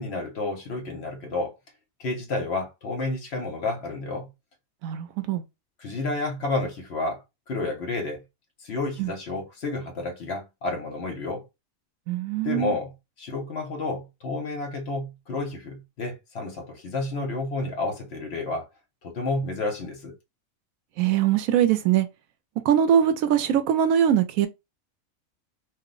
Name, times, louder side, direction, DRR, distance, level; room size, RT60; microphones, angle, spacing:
voice 1, 0.0-1.5 2.0-4.3 5.8-7.2 7.5-8.2 8.6-11.4 12.4-12.9 13.2-18.7 19.0-20.1, left 2 dB, 55° left, 0.9 m, -30 dB
voice 2, 4.8-5.4 9.0-9.1 12.1-12.7 21.0-22.1 22.6-24.5, right 9 dB, 80° right, 1.0 m, -22 dB
2.6 x 2.0 x 3.6 m
omnidirectional pair, 1.4 m